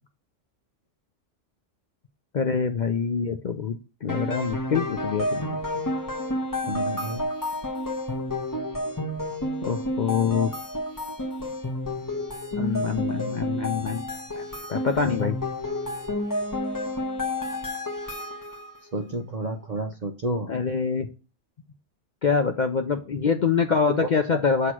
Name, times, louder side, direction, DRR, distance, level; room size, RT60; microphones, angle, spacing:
voice 1, 2.3-5.6 9.6-10.5 12.6-14.0 14.3-14.4 14.7-15.4 20.5-21.1 22.2-24.7, left 6 dB, 50° left, 6 dB, 0.6 m, -25 dB
sound 1, 4.1-18.8, left 1 dB, 15° left, 0.9 m, -30 dB
voice 2, 6.7-7.3 18.9-20.5 23.9-24.1, right 2 dB, 45° right, 5 dB, 0.6 m, -30 dB
8.0 x 2.9 x 5.9 m, 0.33 s
omnidirectional pair, 1.3 m